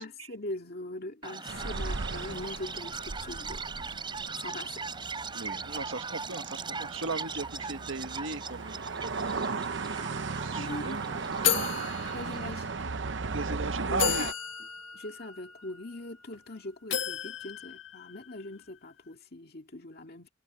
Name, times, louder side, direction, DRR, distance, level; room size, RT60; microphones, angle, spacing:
voice 1, 0.0-4.0 4.3-4.9 5.3-5.5 10.3-11.7 12.1-12.7 13.9-14.3 14.9-20.3, left 2 dB, 55° left, 2.3 m, -42 dB
Chirp tweet, 1.2-12.4, right 4 dB, 25° right, 3.8 m, -40 dB
sound 1, 1.5-14.3, right 4 dB, 70° right, 0.8 m, -36 dB
voice 2, 5.3-9.7 10.4-11.0 13.3-14.3, right 3 dB, 90° right, 1.3 m, -37 dB
sound 2, 10.1-10.2 10.5-10.7 11.4-12.9 13.5-13.6 14.0-16.4 16.9-18.5, left 9 dB, 85° left, 1.5 m, -34 dB
head